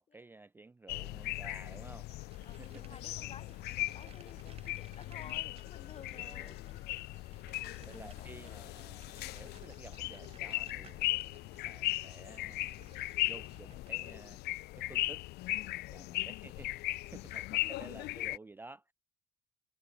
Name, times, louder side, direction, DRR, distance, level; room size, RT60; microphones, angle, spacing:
voice 1, 0.0-2.1 2.5-2.9 6.1-6.6 7.8-11.0 11.6-12.9 13.3-14.4 14.8-15.2 15.9-18.9, right 3 dB, 10° right, 0.4 m, -53 dB
sound 1, 0.9-18.4, left 19 dB, 75° left, 0.4 m, -38 dB
sound 2, 2.1-14.4, right 8 dB, 35° right, 0.8 m, -60 dB
voice 2, 2.4-6.8 7.3-8.6 17.1-17.8, left 7 dB, 35° left, 1.4 m, -55 dB
cardioid pair, 110°, 17 cm